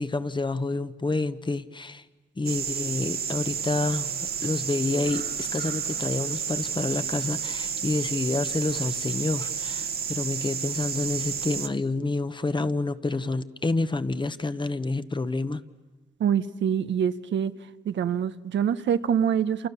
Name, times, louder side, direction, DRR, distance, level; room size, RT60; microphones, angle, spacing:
voice 1, 0.0-2.0 2.4-15.6, left 3 dB, 25° left, 12 dB, 1.2 m, -28 dB
sound 1, 2.4-11.7, right 7 dB, 55° right, 1.4 m, -31 dB
voice 2, 16.2-17.5 17.8-19.7, right 8 dB, 80° right, 11 dB, 1.1 m, -25 dB
29.0 x 28.0 x 7.1 m, 1.2 s
cardioid pair, 80°, 19 cm